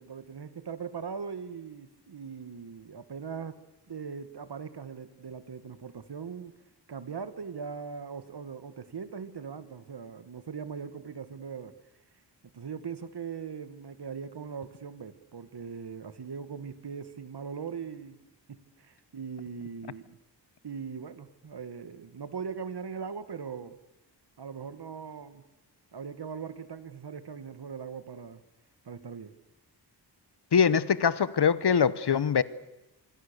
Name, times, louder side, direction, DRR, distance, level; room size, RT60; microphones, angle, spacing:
voice 1, 0.0-3.6 3.9-6.5 6.9-11.7 12.5-18.2 18.5-20.2 20.6-23.8 24.4-25.4 25.9-28.4 28.9-29.3, right 6 dB, 70° right, 12 dB, 1.6 m, -40 dB
voice 2, 30.5-32.4, left 7 dB, 70° left, 17 dB, 1.0 m, -23 dB
25.0 x 23.5 x 6.8 m, 0.97 s
wide cardioid pair, 90°, 42 cm